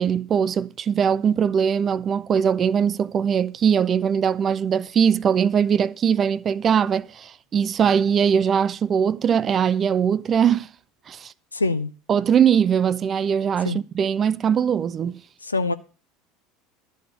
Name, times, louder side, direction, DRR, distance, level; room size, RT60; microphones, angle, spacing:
voice 1, 0.0-10.7 11.1-11.3 12.1-15.2, right 7 dB, 35° right, 0.4 m, -21 dB
voice 2, 11.5-11.9 13.6-13.8 15.4-15.7, left 3 dB, 85° left, 0.6 m, -24 dB
12.0 x 4.2 x 7.9 m
figure-of-eight pair, 70°, 0 cm